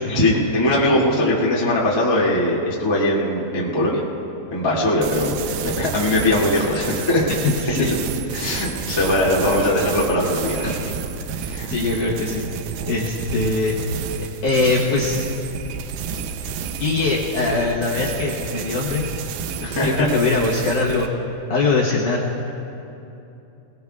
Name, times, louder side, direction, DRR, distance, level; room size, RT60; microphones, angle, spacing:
voice 1, 0.0-4.0 4.5-5.3 5.6-7.3 8.3-10.9 11.4-11.7 19.6-20.1, left 1 dB, 30° left, -6 dB, 0.4 m, -20 dB
sound 1, 5.0-21.1, right 7 dB, 80° right, 2.2 m, -31 dB
voice 2, 7.3-8.0 8.9-9.1 11.7-12.4 12.9-13.8 14.2-15.3 16.8-19.0 19.6-21.1 21.5-22.2, left 3 dB, 70° left, -4 dB, 1.9 m, -22 dB
22.0 x 20.5 x 2.4 m, 2.9 s
omnidirectional pair, 5.0 m